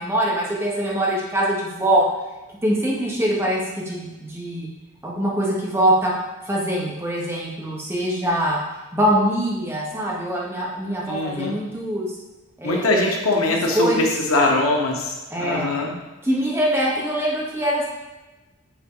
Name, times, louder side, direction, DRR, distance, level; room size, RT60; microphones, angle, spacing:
voice 1, 0.0-2.0 2.6-4.7 5.0-6.1 6.4-8.6 8.9-12.1 12.6-13.0 13.5-14.0 15.3-15.7 16.2-17.9, right 1 dB, 10° right, -5 dB, 1.1 m, -23 dB
voice 2, 11.1-11.6 12.6-16.0, left 2 dB, 90° left, 0 dB, 1.0 m, -22 dB
7.1 x 3.8 x 3.8 m, 1.1 s
head